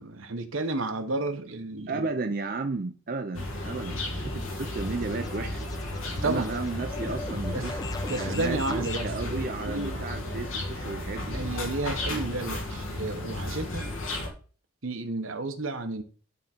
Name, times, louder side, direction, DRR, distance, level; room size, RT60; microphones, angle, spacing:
voice 1, 0.0-2.0 6.2-6.5 7.5-7.7 8.1-10.0 11.3-13.9 14.8-16.0, right 2 dB, 80° right, 1.1 m, -32 dB
voice 2, 1.9-5.7 6.2-7.7 8.1-11.4, right 3 dB, 45° right, 0.5 m, -33 dB
sound 1, 3.3-14.3, left 1 dB, 80° left, 2.0 m, -34 dB
sound 2, 3.7-9.1, left 3 dB, 20° left, 0.3 m, -41 dB
10.5 x 3.7 x 4.5 m
head